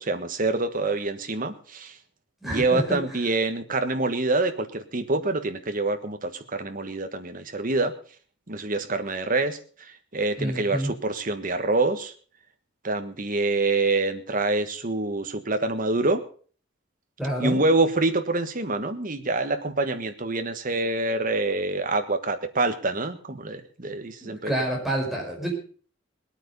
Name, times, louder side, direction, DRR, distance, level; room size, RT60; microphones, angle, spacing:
voice 1, 0.0-1.9 2.4-7.9 8.5-9.6 9.8-12.1 12.8-16.2 17.4-24.5, right 2 dB, 45° right, 7 dB, 1.5 m, -26 dB
voice 2, 2.4-3.2 10.4-10.9 17.2-17.6 24.2-25.5, right 1 dB, ahead, -1 dB, 4.9 m, -28 dB
19.5 x 9.0 x 5.4 m, 0.43 s
head